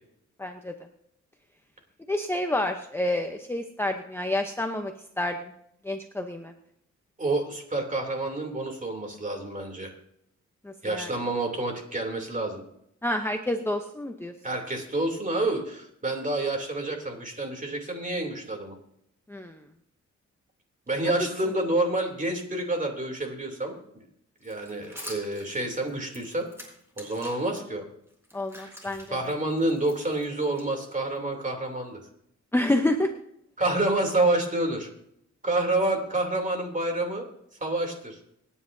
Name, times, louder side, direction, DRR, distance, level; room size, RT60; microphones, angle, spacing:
voice 1, 0.4-0.8 2.1-5.5 5.8-6.5 10.6-11.1 13.0-14.3 19.3-19.6 28.3-29.1 32.5-33.1, left 1 dB, 10° left, 4 dB, 0.8 m, -28 dB
voice 2, 7.2-9.9 10.8-12.6 14.4-18.7 20.9-24.0 24.4-26.5 27.0-27.9 29.1-32.0 33.6-34.9 35.4-37.3 37.6-38.2, right 2 dB, 25° right, 3 dB, 3.0 m, -28 dB
sound 1, 24.4-27.6 28.1-31.2, equal, 10° right, 4.2 m, -46 dB
26.0 x 9.8 x 2.7 m, 0.73 s
wide cardioid pair, 120°, 30 cm